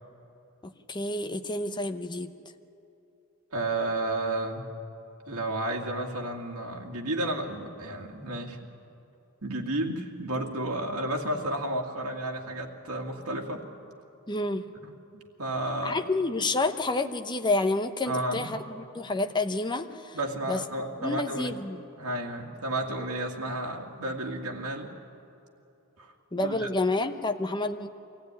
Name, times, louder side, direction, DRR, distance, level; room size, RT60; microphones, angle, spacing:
voice 1, 0.6-2.3 14.3-14.7 15.8-20.2 20.5-20.6 21.0-21.8 26.3-27.9, left 2 dB, 20° left, 8 dB, 0.8 m, -29 dB
voice 2, 3.5-4.7 5.3-8.6 9.4-13.6 14.8-16.0 18.0-18.5 20.1-21.6 22.0-24.9 26.0-26.7, right 1 dB, 70° right, 0 dB, 2.3 m, -32 dB
24.0 x 16.0 x 9.7 m, 2.9 s
head